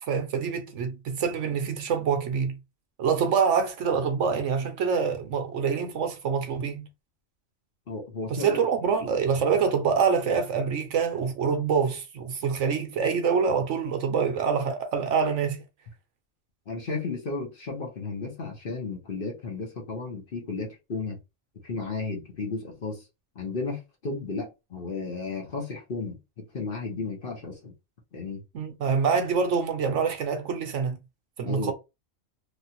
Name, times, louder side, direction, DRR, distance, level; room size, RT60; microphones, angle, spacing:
voice 1, 0.0-2.6 3.0-6.9 8.3-15.6 28.5-31.0 31.4-31.7, right 6 dB, 70° right, 0.9 m, -26 dB
voice 2, 7.9-8.6 16.7-21.2 21.6-23.0 23.4-27.7 28.1-28.4 31.4-31.7, left 3 dB, 45° left, 1.1 m, -34 dB
3.2 x 2.4 x 2.8 m
omnidirectional pair, 1.4 m